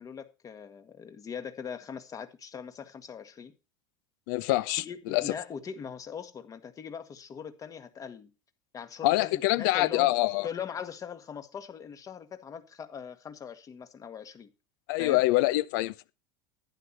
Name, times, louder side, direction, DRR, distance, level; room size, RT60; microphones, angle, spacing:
voice 1, 0.0-3.5 4.9-8.3 8.7-10.1 10.4-14.5 15.0-15.2, left 7 dB, 30° left, 1.8 m, -41 dB
voice 2, 4.3-5.3 9.0-10.5 14.9-16.1, left 18 dB, 60° left, 0.8 m, -25 dB
11.5 x 10.5 x 4.3 m
hypercardioid pair, 80°, 11 cm